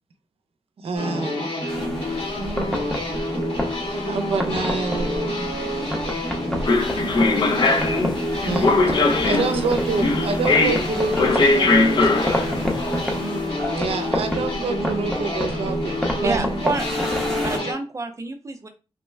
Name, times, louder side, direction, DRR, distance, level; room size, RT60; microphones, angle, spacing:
voice 1, 0.8-1.4 4.0-5.5 8.4-8.8 9.2-11.9 13.8-16.4, right 4 dB, 80° right, 0.5 m, -27 dB
sound 1, 1.0-17.7, left 1 dB, 75° left, 1.4 m, -28 dB
sound 2, 1.7-17.6, left 1 dB, 5° left, 0.7 m, -30 dB
sound 3, 6.7-13.4, left 3 dB, 50° left, 0.4 m, -21 dB
voice 2, 9.1-9.5 10.4-10.5 11.1-11.2 12.3-13.0 13.6-13.9 15.1-15.4 16.7-17.1, left 3 dB, 25° left, 0.9 m, -38 dB
voice 3, 16.2-17.1 17.4-18.7, right 3 dB, 30° right, 0.5 m, -28 dB
3.2 x 2.1 x 3.3 m
wide cardioid pair, 150°, 10 cm